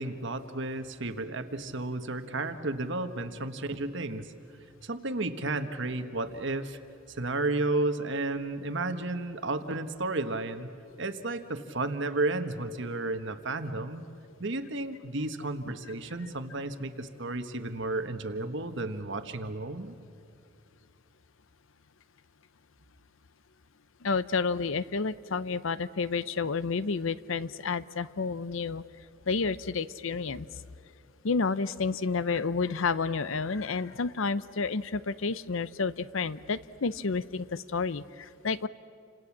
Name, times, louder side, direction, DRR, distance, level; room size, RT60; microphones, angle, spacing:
voice 1, 0.0-4.3 4.8-6.8 7.1-10.7 11.0-14.0 14.4-20.0, right 2 dB, 60° right, 9 dB, 1.4 m, -32 dB
voice 2, 24.0-28.8 29.3-30.5 31.2-38.7, left 4 dB, 70° left, 16 dB, 0.7 m, -30 dB
29.5 x 26.5 x 7.4 m, 2.5 s
head